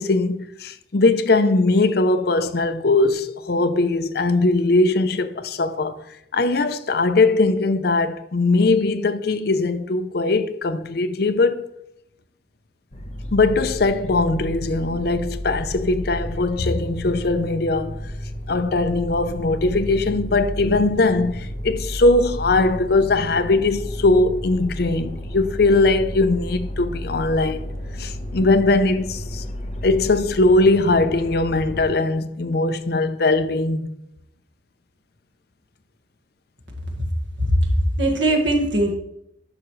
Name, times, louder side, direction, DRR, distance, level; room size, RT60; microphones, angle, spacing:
voice 1, 0.0-6.0 6.3-11.7 13.3-18.0 18.5-27.7 28.0-29.4 29.8-33.9, left 2 dB, 60° left, 0.6 m, -20 dB
sound 1, 12.9-31.9, equal, 35° left, 1.0 m, -32 dB
voice 2, 37.4-38.9, right 1 dB, 90° right, 1.8 m, -20 dB
10.5 x 6.1 x 3.2 m
head